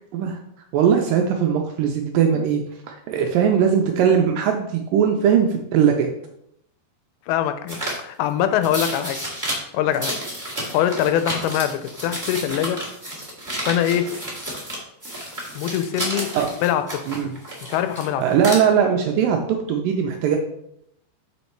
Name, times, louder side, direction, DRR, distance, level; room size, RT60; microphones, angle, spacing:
voice 1, 0.7-2.6 2.9-6.1 16.4-16.5 17.1-17.3 18.2-20.4, right 8 dB, 85° right, 3 dB, 2.0 m, -20 dB
voice 2, 7.3-9.2 9.7-10.1 10.7-12.8 13.6-14.1 15.6-17.0 17.6-18.2, left 10 dB, 85° left, 10 dB, 2.5 m, -23 dB
sound 1, 7.7-8.0 8.6-9.5 9.9-14.8 15.0-18.0 18.3-18.5, right 1 dB, 15° right, 0.7 m, -31 dB
7.1 x 4.2 x 4.5 m, 0.74 s
omnidirectional pair, 4.5 m